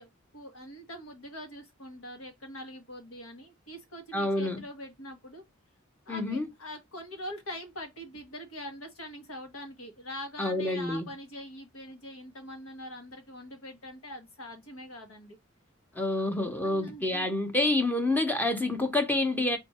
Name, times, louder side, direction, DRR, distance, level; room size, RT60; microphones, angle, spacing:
voice 1, 0.0-5.4 6.1-15.4 15.9-16.0 16.6-17.3, equal, 85° left, 1.5 m, -43 dB
voice 2, 4.1-4.6 6.1-6.5 10.4-11.1 16.0-19.6, left 2 dB, 10° left, 0.8 m, -28 dB
4.4 x 2.6 x 4.2 m
head